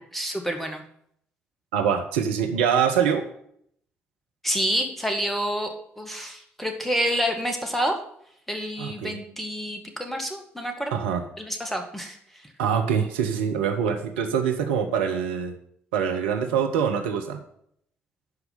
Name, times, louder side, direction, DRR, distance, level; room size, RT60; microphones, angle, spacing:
voice 1, 0.1-0.8 4.4-8.0 8.5-10.9 11.4-12.5, equal, 5° left, 4 dB, 1.9 m, -28 dB
voice 2, 1.7-3.3 8.8-9.2 10.9-11.2 12.6-15.5 15.9-17.4, right 7 dB, 70° right, 4 dB, 0.9 m, -24 dB
11.5 x 4.8 x 6.9 m, 0.68 s
figure-of-eight pair, 45°, 6 cm